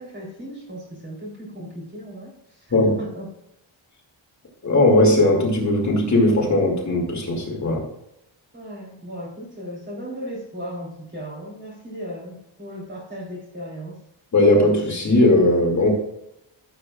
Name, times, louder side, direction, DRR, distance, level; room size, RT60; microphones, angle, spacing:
voice 1, 0.0-3.3 8.5-14.0, equal, 25° right, -2 dB, 3.6 m, -36 dB
voice 2, 4.6-7.9 14.3-15.9, left 1 dB, 40° left, -2 dB, 2.6 m, -18 dB
14.5 x 7.8 x 2.4 m, 0.82 s
wide cardioid pair, 160°, 45 cm